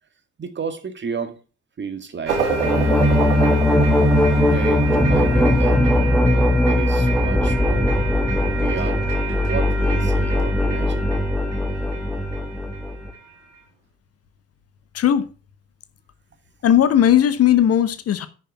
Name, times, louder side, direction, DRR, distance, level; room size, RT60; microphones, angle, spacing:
voice 1, 0.4-1.4 1.8-2.4 4.5-8.0 8.5-11.1, right 6 dB, 30° right, 1.9 m, -32 dB
sound 1, 2.3-13.4, right 5 dB, 80° right, 2.0 m, -29 dB
sound 2, 2.5-13.1, left 1 dB, ahead, 2.0 m, -19 dB
voice 2, 14.9-15.2 16.6-18.3, left 10 dB, 45° left, 1.2 m, -17 dB
10.5 x 6.1 x 5.8 m
figure-of-eight pair, 50°, 35 cm